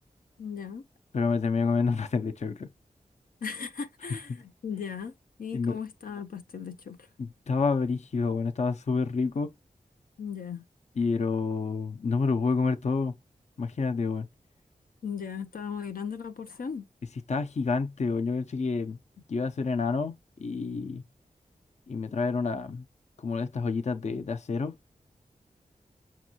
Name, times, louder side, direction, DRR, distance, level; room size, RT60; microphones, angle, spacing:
voice 1, 0.4-0.9 3.4-5.1 5.4-7.0 10.2-10.6 15.0-16.8, left 6 dB, 85° left, 0.8 m, -37 dB
voice 2, 1.1-2.7 5.5-5.8 7.2-9.5 11.0-13.1 13.6-14.3 17.3-19.0 19.3-20.1 20.4-21.0 21.9-22.9 23.2-24.7, left 4 dB, 55° left, 0.5 m, -28 dB
6.0 x 2.9 x 2.4 m
wide cardioid pair, 95°, 14 cm